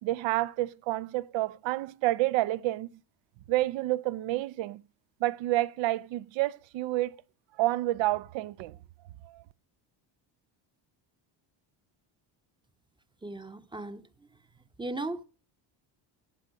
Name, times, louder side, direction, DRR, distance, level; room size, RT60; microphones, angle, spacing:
voice 1, 0.0-2.9 3.5-4.8 5.2-7.1 7.6-8.8 9.2-9.4, right 17 dB, 75° right, 0.7 m, -29 dB
voice 2, 13.2-14.0 14.8-15.2, right 2 dB, 10° right, 0.8 m, -36 dB
17.5 x 7.7 x 6.2 m
cardioid pair, 125°, 45 cm